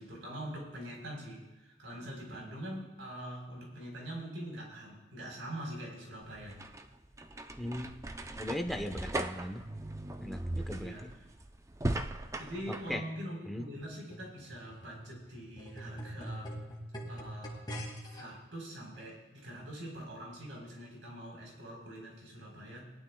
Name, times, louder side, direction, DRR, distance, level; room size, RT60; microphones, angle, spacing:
voice 1, 0.0-6.6 10.6-11.3 12.4-16.6 17.1-17.7 18.1-22.9, equal, 80° right, -1 dB, 3.9 m, -44 dB
sound 1, 6.2-12.9, right 1 dB, 15° right, 0.4 m, -38 dB
voice 2, 7.6-8.1 8.3-9.7 10.2-10.9 12.9-13.0 13.5-13.7, left 1 dB, ahead, 4 dB, 0.8 m, -38 dB
sound 2, 13.8-18.2 19.0-19.1, equal, 20° left, 2.1 m, -43 dB
19.0 x 11.5 x 2.3 m, 1.1 s
head